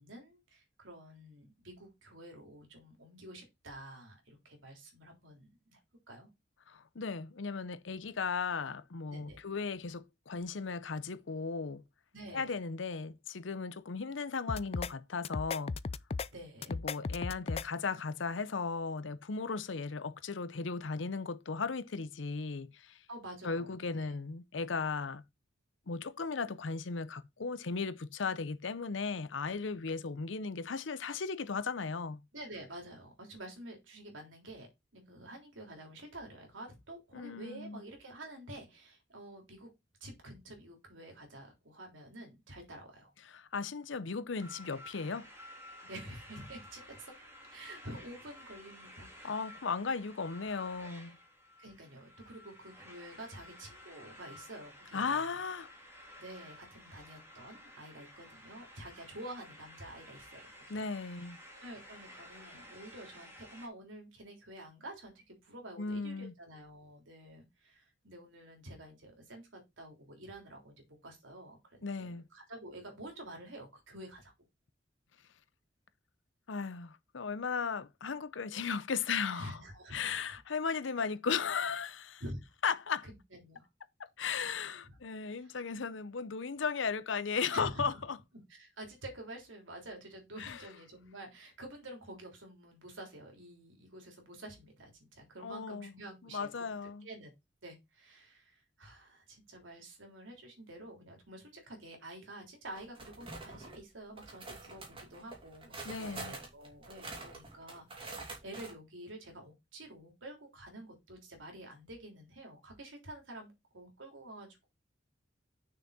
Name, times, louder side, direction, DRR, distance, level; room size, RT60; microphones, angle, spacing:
voice 1, 0.0-5.8 6.1-6.3 9.1-9.4 12.1-12.6 16.3-16.8 23.1-24.2 32.3-34.7 34.9-39.7 40.0-43.1 45.8-49.4 51.6-55.3 56.2-60.8 61.1-61.2 61.6-74.3 79.3-80.4 82.2-82.4 83.0-83.7 84.4-84.5 84.9-85.0 85.4-85.5 87.5-88.0 88.5-97.3 97.6-114.7, right 1 dB, 85° right, 3.4 m, -49 dB
voice 2, 6.7-11.8 12.3-15.8 16.7-23.0 23.4-25.2 25.9-32.2 37.1-37.8 43.2-45.3 49.2-51.2 54.9-55.7 60.7-61.4 65.8-66.3 71.8-72.3 76.5-79.5 79.9-82.2 82.6-83.1 84.0-88.2 90.4-90.6 95.4-95.9 96.3-97.1 105.8-106.4, left 5 dB, 75° left, 0.7 m, -36 dB
sound 1, 14.5-14.9 15.2-16.3 16.6-17.6, left 4 dB, 30° left, 0.3 m, -36 dB
sound 2, 44.3-63.7, left 1 dB, 15° right, 2.9 m, -53 dB
sound 3, 102.7-103.8 104.2-108.7, right 3 dB, 30° right, 2.8 m, -46 dB
6.5 x 5.9 x 4.1 m
head